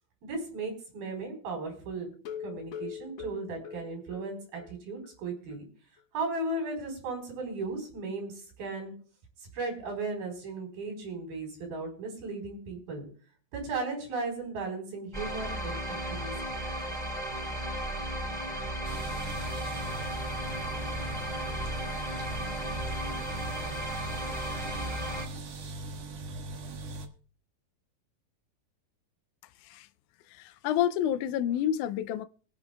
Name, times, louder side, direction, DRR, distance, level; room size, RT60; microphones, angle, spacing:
voice 1, 0.2-2.1 2.4-5.7 6.1-8.9 9.5-13.1 13.5-15.7 16.1-16.5, right 3 dB, 85° right, 6.0 m, -36 dB
sound 1, 2.1-4.7 5.0-5.1 5.5-5.6 6.0-6.1, left 8 dB, 65° left, 2.1 m, -42 dB
sound 2, 15.1-25.2, right 1 dB, ahead, 4.1 m, -35 dB
sound 3, 18.8-27.1, right 2 dB, 55° right, 2.4 m, -40 dB
voice 2, 30.3-32.3, left 10 dB, 80° left, 1.8 m, -29 dB
25.0 x 8.8 x 2.3 m
omnidirectional pair, 4.1 m